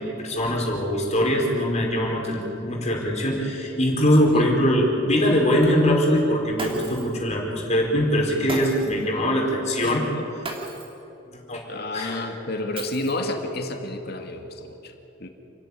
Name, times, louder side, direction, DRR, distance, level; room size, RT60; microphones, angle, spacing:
voice 1, 0.0-10.0 11.5-11.6 11.9-12.2, equal, 35° left, -1 dB, 4.5 m, -22 dB
Shatter, 6.6-7.2 8.5-9.1 10.4-11.0 12.8-13.4, right 2 dB, 30° right, 3.2 m, -34 dB
voice 2, 9.0-9.4 9.8-10.3 11.7-14.9 15.2-15.3, left 2 dB, 55° left, 4 dB, 2.5 m, -31 dB
29.0 x 14.0 x 9.7 m, 3.0 s
head